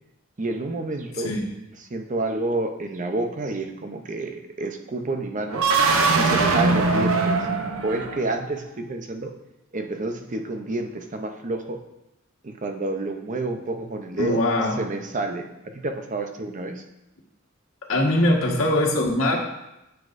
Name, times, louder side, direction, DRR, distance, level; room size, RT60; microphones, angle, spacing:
voice 1, 0.4-1.3 1.8-5.6 6.2-7.4 7.8-9.3 9.7-11.8 12.4-14.4 14.8-15.5 15.7-16.8, right 2 dB, 40° right, 5 dB, 0.7 m, -29 dB
sound 1, 5.5-8.5, right 3 dB, 80° right, 0.8 m, -21 dB
voice 2, 14.2-14.8 17.9-19.4, left 1 dB, 90° left, -2 dB, 1.5 m, -21 dB
9.6 x 7.0 x 2.6 m, 0.92 s
head